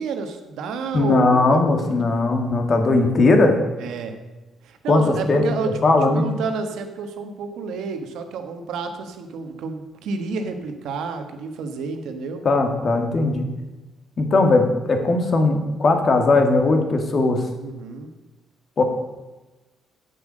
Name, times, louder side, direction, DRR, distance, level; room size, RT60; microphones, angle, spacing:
voice 1, 0.0-1.9 3.8-4.2 4.6-5.7 6.1-12.4 17.6-18.1, right 5 dB, 80° right, 6 dB, 1.3 m, -30 dB
voice 2, 0.9-3.6 4.9-5.4 5.8-6.3 12.4-13.5 14.2-17.5 18.8-18.9, left 3 dB, 40° left, 5 dB, 1.7 m, -18 dB
8.4 x 7.6 x 6.3 m, 1.1 s
cardioid pair, 115°, 0 cm